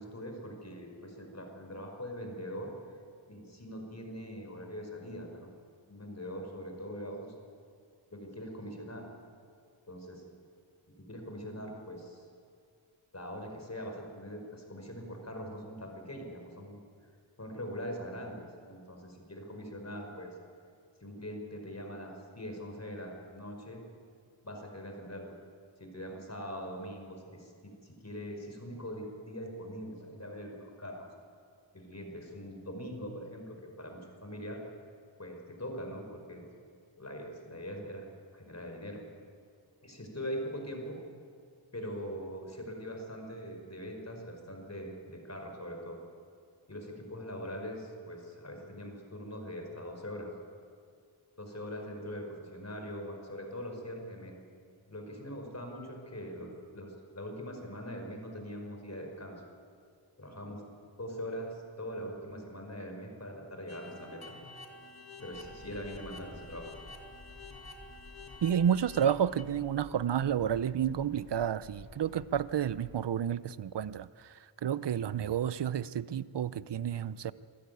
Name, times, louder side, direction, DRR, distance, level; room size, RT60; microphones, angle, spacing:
voice 1, 0.0-2.7 3.3-5.5 5.9-7.3 8.1-9.1 9.9-10.2 10.9-12.3 13.1-16.8 17.4-20.3 21.0-23.8 24.4-25.3 25.8-31.1 31.7-34.6 35.2-36.4 37.0-38.1 38.3-39.0 39.8-41.0 41.7-46.0 46.7-50.3 51.4-54.3 54.9-59.4 60.2-60.6 61.0-64.3 65.2-66.7, equal, 35° left, 3 dB, 5.0 m, -42 dB
sound 1, 63.7-69.4, left 3 dB, 50° left, 2.5 m, -50 dB
sound 2, 65.3-73.0, left 2 dB, 70° left, 5.0 m, -53 dB
voice 2, 68.4-77.3, right 9 dB, 60° right, 17 dB, 0.7 m, -30 dB
25.5 x 13.5 x 9.4 m, 2.2 s
wide cardioid pair, 65°, 48 cm